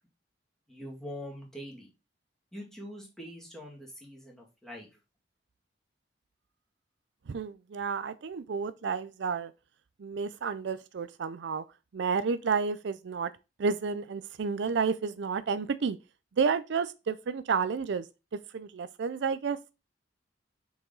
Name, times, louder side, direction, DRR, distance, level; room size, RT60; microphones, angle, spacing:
voice 1, 0.7-1.9 2.5-4.9, equal, 5° left, 2.3 m, -43 dB
voice 2, 7.3-9.5 10.0-11.6 11.9-13.3 13.6-16.0 16.4-18.1 18.5-19.6, right 5 dB, 70° right, 0.4 m, -31 dB
6.2 x 4.8 x 3.9 m
head